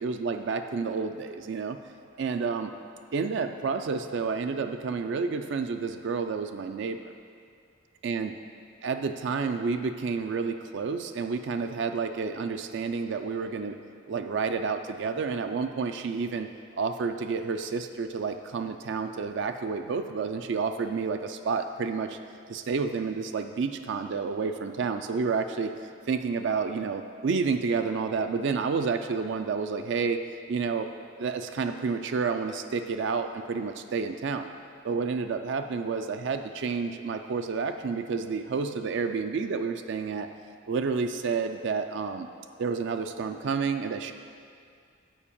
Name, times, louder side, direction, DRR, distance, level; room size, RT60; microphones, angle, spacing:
voice 1, 0.0-1.8 2.2-2.7 3.1-7.1 8.0-8.3 8.8-13.8 14.1-16.5 16.8-22.2 22.5-25.7 26.1-30.9 31.2-34.5 34.8-40.3 40.7-42.3 42.6-44.1, right 5 dB, 60° right, 7 dB, 0.4 m, -30 dB
7.1 x 5.1 x 7.1 m, 2.3 s
head